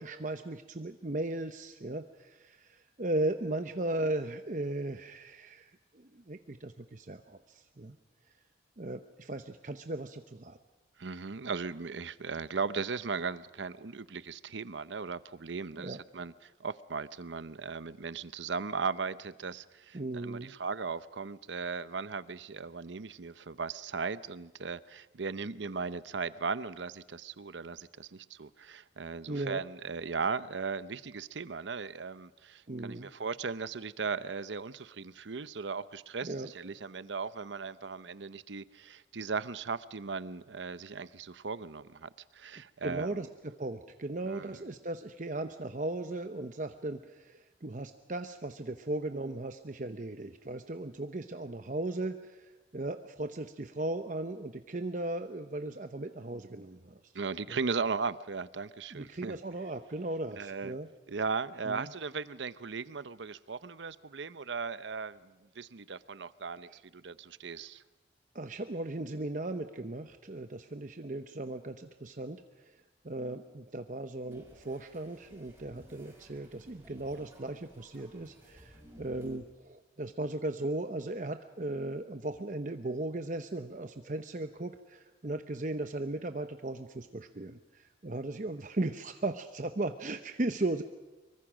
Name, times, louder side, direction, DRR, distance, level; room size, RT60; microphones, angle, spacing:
voice 1, 0.0-8.0 8.8-10.6 15.8-16.0 19.9-20.5 29.3-29.6 32.7-33.1 36.2-36.5 42.8-57.1 57.5-57.6 58.9-60.9 61.6-61.9 66.7-66.8 68.3-90.8, right 2 dB, 45° right, 8 dB, 0.8 m, -37 dB
voice 2, 11.0-43.1 44.3-44.5 57.1-59.4 60.4-60.7 61.1-67.8, right 5 dB, 80° right, 15 dB, 0.8 m, -37 dB
sound 1, 74.3-79.4, equal, 15° right, 5.9 m, -57 dB
25.0 x 23.5 x 6.2 m, 1.1 s
head